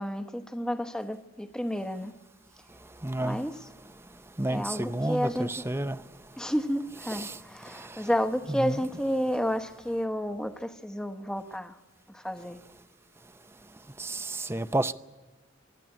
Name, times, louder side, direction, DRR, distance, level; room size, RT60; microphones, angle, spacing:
voice 1, 0.0-2.1 3.2-3.6 4.5-5.5 6.4-11.8 12.1-12.6, equal, 5° left, 1.0 m, -31 dB
voice 2, 3.0-3.4 4.4-6.0 7.1-7.4 7.7-7.9 8.5-8.8 14.0-14.9, right 1 dB, 10° right, 0.6 m, -30 dB
25.5 x 12.5 x 9.8 m
head